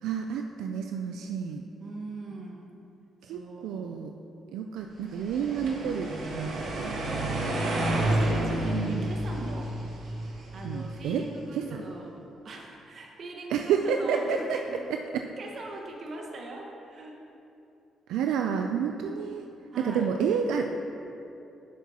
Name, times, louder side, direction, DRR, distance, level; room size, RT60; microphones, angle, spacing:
voice 1, 0.0-1.6 3.2-4.1 4.5-7.4 8.6-9.1 10.6-11.8 13.5-14.6 14.9-15.3 18.1-19.5 19.8-20.7, right 7 dB, 90° right, 4 dB, 0.3 m, -30 dB
voice 2, 1.8-2.7 3.2-3.9 7.1-9.8 10.5-14.8 15.4-17.2 18.4-18.6 19.1-19.4 19.7-20.1, right 2 dB, 55° right, 0 dB, 1.3 m, -41 dB
sound 1, 5.1-11.2, right 1 dB, 70° right, 1.4 m, -30 dB
10.5 x 7.2 x 2.9 m, 2.8 s
cardioid pair, 90°, 0 cm